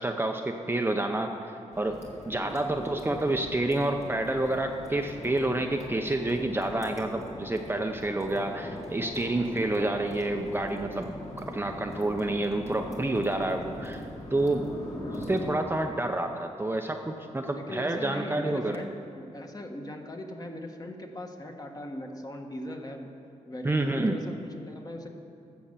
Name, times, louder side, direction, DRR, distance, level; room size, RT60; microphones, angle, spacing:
voice 1, 0.0-11.1 11.4-14.0 14.3-14.7 15.1-18.8 23.6-24.2, right 2 dB, 15° right, 3 dB, 0.6 m, -29 dB
sound 1, 1.7-15.6, left 1 dB, 55° left, 2.1 m, -41 dB
voice 2, 2.4-2.8 17.5-23.1 23.5-25.1, left 1 dB, 30° left, 3 dB, 1.3 m, -40 dB
14.0 x 5.3 x 7.4 m, 2.6 s
cardioid pair, 85°, 13 cm